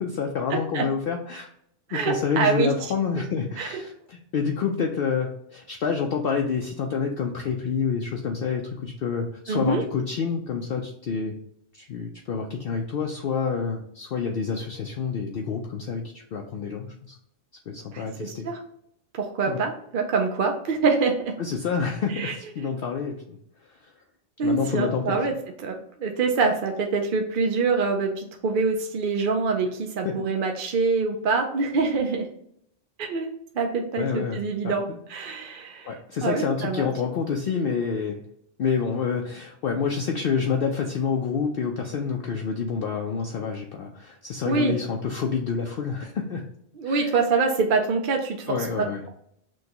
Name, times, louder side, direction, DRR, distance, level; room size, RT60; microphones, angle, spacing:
voice 1, 0.0-1.5 1.9-11.4 11.7-17.2 17.7-18.5 19.5-19.6 21.4-23.4 23.7-23.9 24.4-25.3 30.0-30.1 34.0-34.8 35.9-38.2 38.6-46.4 46.8-47.2 48.5-49.0, left 6 dB, 60° left, 2 dB, 0.6 m, -28 dB
voice 2, 1.9-2.7 3.6-3.7 9.5-9.8 17.9-18.6 19.2-21.1 22.2-22.7 24.4-25.3 25.6-32.3 33.0-33.3 33.6-35.9 36.2-36.8 44.5-44.8 46.8-48.4, right 4 dB, 55° right, 2 dB, 0.6 m, -25 dB
6.1 x 2.2 x 2.9 m, 0.70 s
omnidirectional pair, 1.3 m